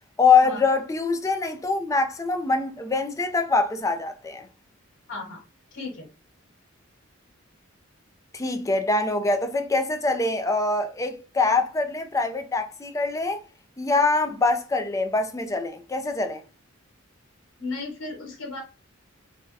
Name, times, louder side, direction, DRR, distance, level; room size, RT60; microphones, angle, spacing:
voice 1, 0.2-4.5 8.3-13.4 13.8-16.4, left 3 dB, 15° left, 0.4 m, -24 dB
voice 2, 5.1-5.4 5.7-6.1 17.6-18.6, left 3 dB, 65° left, 1.4 m, -35 dB
3.8 x 2.2 x 2.6 m
head